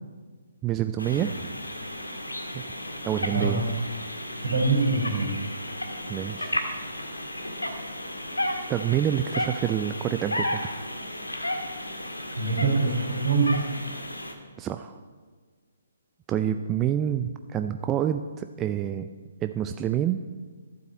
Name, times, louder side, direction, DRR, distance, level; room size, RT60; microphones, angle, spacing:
voice 1, 0.6-1.3 2.5-2.6 3.0-3.6 6.1-6.5 8.7-10.6 14.6-15.0 16.3-19.1 19.4-20.2, right 10 dB, 20° right, 8 dB, 0.4 m, -27 dB
sound 1, 1.0-14.3, left 1 dB, 85° left, 1.7 m, -33 dB
voice 2, 4.4-5.3 12.4-13.7, right 3 dB, 65° right, 1 dB, 4.2 m, -24 dB
12.0 x 7.8 x 8.5 m, 1.5 s
figure-of-eight pair, 135°, 0 cm